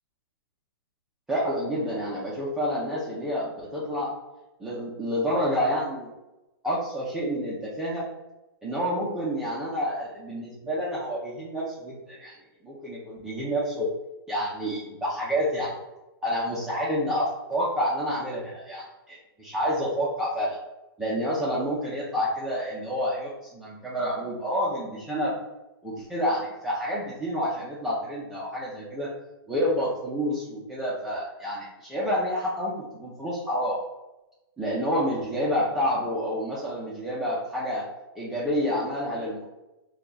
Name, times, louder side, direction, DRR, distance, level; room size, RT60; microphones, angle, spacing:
voice 1, 1.3-4.2 4.6-6.1 6.6-8.1 8.6-12.3 12.6-13.9 14.3-15.7 16.2-20.6 21.0-25.3 25.8-29.1 29.5-33.8 34.6-37.9 38.2-39.6, equal, 5° right, -9 dB, 0.5 m, -29 dB
3.0 x 2.3 x 3.8 m, 0.99 s
hypercardioid pair, 150°, 13 cm